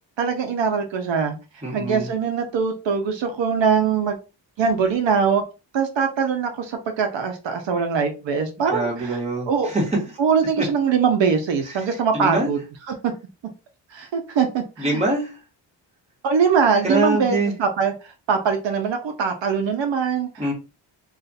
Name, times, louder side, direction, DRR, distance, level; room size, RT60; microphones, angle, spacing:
voice 1, 0.2-1.4 1.7-4.2 4.6-5.4 5.7-9.2 9.5-9.7 10.2-12.6 12.9-13.1 13.9-15.0 16.2-20.3, right 6 dB, 70° right, 0.7 m, -22 dB
voice 2, 1.6-2.1 8.7-10.0 10.6-10.7 11.7-11.9 12.1-12.5 14.8-15.4 16.8-17.5 20.4-20.5, right 2 dB, 15° right, 1.3 m, -24 dB
2.5 x 2.4 x 4.0 m
wide cardioid pair, 165°, 45 cm